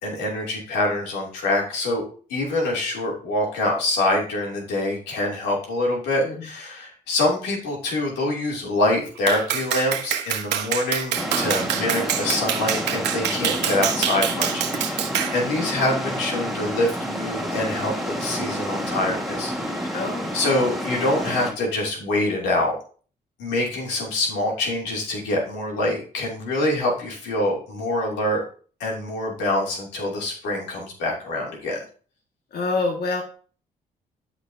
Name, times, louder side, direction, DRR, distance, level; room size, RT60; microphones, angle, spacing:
voice 1, 0.0-2.0 2.3-15.1 15.3-19.8 20.3-22.7 23.4-28.4 28.8-31.8, left 1 dB, 90° left, -2 dB, 3.0 m, -25 dB
Clapping, 9.3-15.4, right 9 dB, 80° right, 1.3 m, -26 dB
sound 1, 11.1-21.5, equal, ahead, 2.5 m, -29 dB
voice 2, 19.9-20.3 32.5-33.2, left 3 dB, 65° left, 0 dB, 2.1 m, -26 dB
13.0 x 5.2 x 2.9 m, 0.42 s
supercardioid pair, 60°, 18 cm